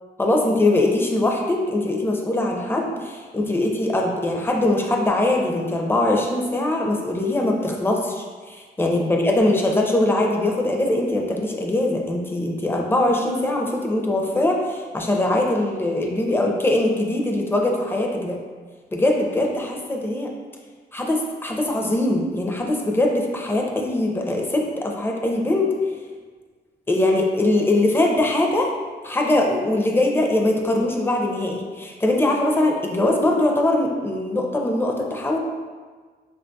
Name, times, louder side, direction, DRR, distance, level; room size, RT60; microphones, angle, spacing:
voice 1, 0.2-18.4 18.9-20.3 20.9-25.7 26.9-28.7 29.0-35.4, left 1 dB, 15° left, 1 dB, 0.4 m, -22 dB
4.2 x 2.2 x 2.6 m, 1.5 s
cardioid pair, 100°, 17 cm